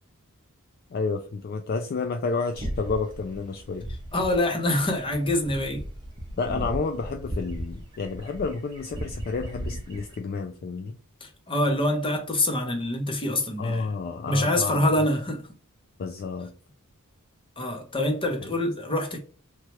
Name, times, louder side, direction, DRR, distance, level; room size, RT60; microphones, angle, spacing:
voice 1, 0.9-3.9 6.3-11.0 13.6-14.9 16.0-16.5, left 4 dB, 45° left, 0.3 m, -30 dB
sound 1, 2.5-10.2, right 1 dB, 20° right, 0.8 m, -36 dB
voice 2, 4.1-5.8 11.2-13.9 14.3-15.4 17.6-19.2, left 1 dB, 25° left, 0.7 m, -25 dB
2.9 x 2.3 x 3.0 m
head